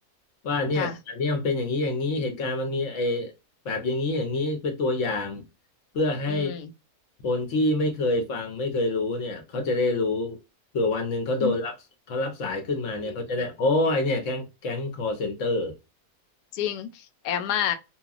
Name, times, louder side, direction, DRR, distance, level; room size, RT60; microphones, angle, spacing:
voice 1, 0.4-3.3 3.6-5.4 5.9-6.6 7.2-10.4 10.7-11.7 12.1-15.7, left 2 dB, 60° left, 0.9 m, -26 dB
voice 2, 6.3-6.7 11.4-11.6 13.0-13.1 16.5-17.7, left 10 dB, 80° left, 1.1 m, -29 dB
2.9 x 2.2 x 2.3 m
omnidirectional pair, 1.7 m